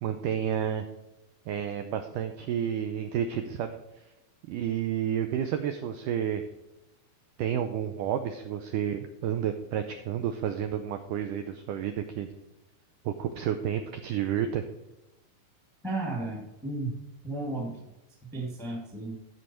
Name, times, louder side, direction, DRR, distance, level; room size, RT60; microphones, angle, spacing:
voice 1, 0.0-0.9 1.5-4.1 4.5-6.4 7.4-12.3 13.1-14.6, right 9 dB, 85° right, 7 dB, 1.8 m, -30 dB
voice 2, 15.8-16.9 17.2-17.8 18.3-19.2, right 2 dB, ahead, -1 dB, 0.8 m, -33 dB
13.0 x 5.3 x 4.4 m, 0.99 s
omnidirectional pair, 4.5 m